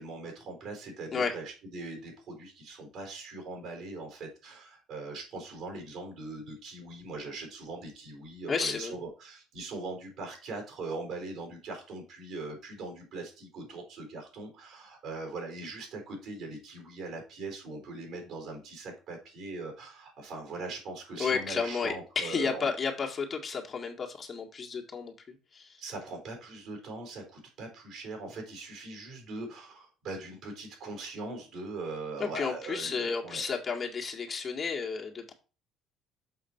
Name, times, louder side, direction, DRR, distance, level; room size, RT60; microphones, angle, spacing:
voice 1, 0.0-22.7 25.8-33.4, right 3 dB, 60° right, 3 dB, 4.2 m, -41 dB
voice 2, 8.5-9.0 21.2-25.8 32.2-35.3, left 5 dB, 35° left, 1 dB, 2.0 m, -32 dB
6.9 x 5.7 x 4.5 m, 0.34 s
hypercardioid pair, 55°, 0 cm